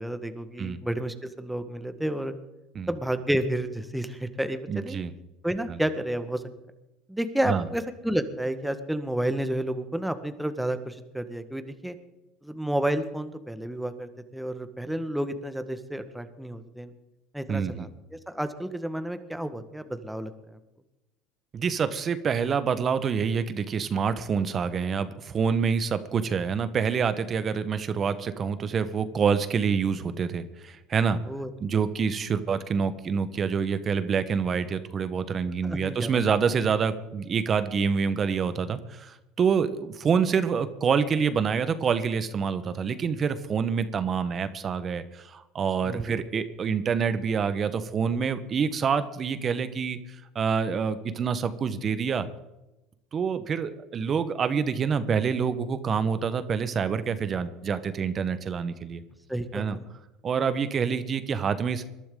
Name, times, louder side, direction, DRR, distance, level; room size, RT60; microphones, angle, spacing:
voice 1, 0.0-2.3 2.9-5.0 5.4-6.4 7.1-11.9 12.4-16.9 17.3-20.3 31.3-31.8 35.6-36.2 45.8-46.4 59.3-59.9, right 1 dB, 5° right, 9 dB, 1.6 m, -31 dB
voice 2, 4.7-5.1 5.7-5.8 7.4-7.7 17.5-17.9 21.5-31.2 31.6-50.0 50.3-52.3 53.1-59.0 59.5-59.8 60.2-61.8, right 6 dB, 40° right, 12 dB, 1.2 m, -27 dB
21.5 x 12.0 x 3.9 m, 0.97 s
hypercardioid pair, 85°, 0 cm